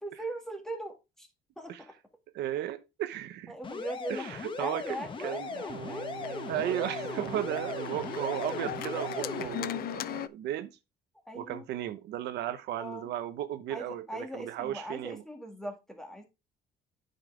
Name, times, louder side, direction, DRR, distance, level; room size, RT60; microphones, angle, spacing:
voice 1, 0.0-1.3 1.6-2.0 3.5-4.3 4.6-6.7 11.3-11.6 12.8-13.1 13.7-16.2, right 1 dB, 5° left, 2.0 m, -40 dB
voice 2, 2.3-3.5 4.1-5.0 5.2-5.6 6.5-10.7 11.3-15.2, right 12 dB, 80° right, 1.0 m, -35 dB
sound 1, 3.6-9.5, left 4 dB, 30° left, 1.3 m, -38 dB
Organ, 4.5-10.3, left 13 dB, 60° left, 0.5 m, -40 dB
sound 2, 5.7-9.8, right 6 dB, 40° right, 1.0 m, -42 dB
9.2 x 5.8 x 3.3 m
cardioid pair, 125°, 17 cm